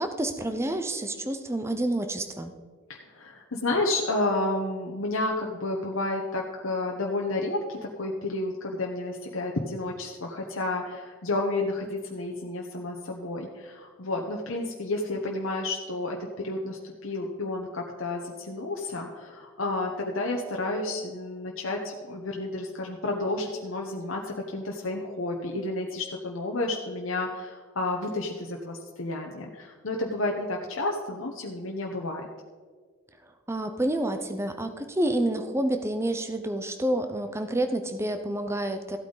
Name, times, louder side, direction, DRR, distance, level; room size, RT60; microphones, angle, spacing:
voice 1, 0.0-2.5 33.5-39.0, right 1 dB, 10° right, 8 dB, 0.7 m, -28 dB
voice 2, 2.9-32.3, left 2 dB, 75° left, 0 dB, 1.1 m, -31 dB
15.0 x 8.6 x 4.0 m, 1.5 s
head